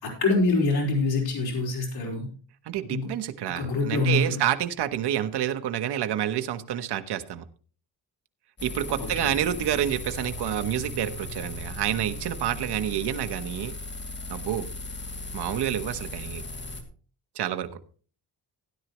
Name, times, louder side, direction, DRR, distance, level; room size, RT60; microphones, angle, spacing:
voice 1, 0.0-2.3 2.9-3.1 3.5-4.4 9.0-9.4, left 3 dB, 65° left, -1 dB, 4.6 m, -25 dB
voice 2, 2.6-7.4 8.6-13.7 14.3-14.7 15.3-16.4 17.3-17.7, right 11 dB, 80° right, 9 dB, 1.2 m, -28 dB
sound 1, 8.6-16.8, left 1 dB, 30° left, 2.6 m, -37 dB
16.5 x 10.5 x 3.1 m, 0.39 s
cardioid pair, 140°, 40 cm